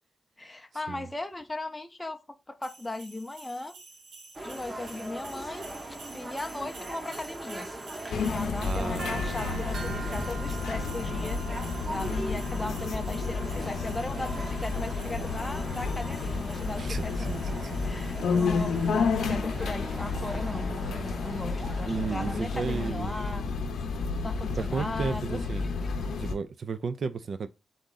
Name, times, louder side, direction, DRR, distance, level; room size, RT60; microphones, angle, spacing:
voice 1, 0.4-2.2 2.5-3.7 4.4-7.7 8.3-11.4 11.9-17.3 17.8-23.4 24.2-25.4, left 2 dB, 10° left, 0.5 m, -37 dB
sound 1, 2.6-20.3, right 4 dB, 75° right, 1.0 m, -46 dB
sound 2, 4.3-22.9, right 1 dB, 20° right, 0.7 m, -41 dB
sound 3, 8.1-26.3, left 4 dB, 85° left, 0.6 m, -31 dB
voice 2, 8.6-10.0 16.8-18.3 21.9-23.1 24.6-25.7 26.1-27.5, right 5 dB, 50° right, 0.3 m, -34 dB
3.8 x 3.6 x 3.9 m
wide cardioid pair, 155°, 0 cm